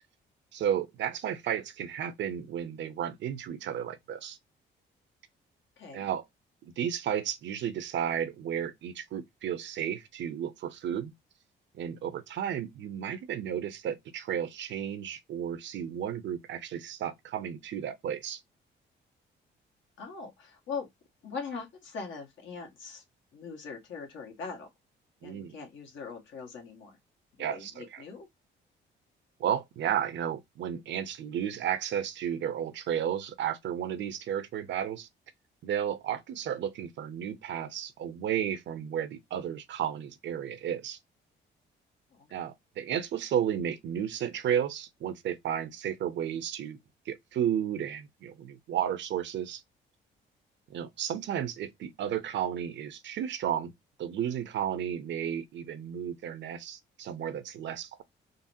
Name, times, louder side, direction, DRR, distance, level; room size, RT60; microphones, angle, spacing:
voice 1, 0.5-4.4 5.9-6.2 6.6-11.1 11.8-18.4 25.2-25.6 27.4-28.0 29.4-35.1 35.6-41.0 42.3-46.8 47.1-49.6 50.7-53.7 54.0-58.0, right 9 dB, 65° right, 0.6 m, -33 dB
voice 2, 20.0-20.9 21.2-23.0 23.3-24.7 25.2-27.0 27.4-28.3 42.1-42.4, left 5 dB, 75° left, 1.3 m, -41 dB
3.9 x 2.0 x 2.6 m
cardioid pair, 90°, 20 cm